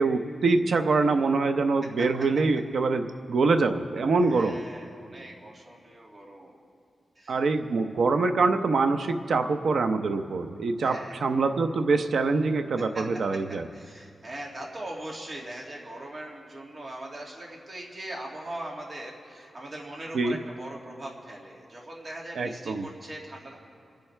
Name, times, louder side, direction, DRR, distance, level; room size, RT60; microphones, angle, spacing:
voice 1, 0.0-4.6 7.3-13.7 20.1-20.4 22.4-22.9, right 3 dB, 75° right, 7 dB, 0.7 m, -24 dB
voice 2, 4.2-6.6 7.2-7.4 10.8-11.3 12.9-13.0 13.7-23.6, right 1 dB, 40° right, -2 dB, 2.3 m, -40 dB
27.0 x 10.5 x 3.3 m, 2.4 s
wide cardioid pair, 135°, 0 cm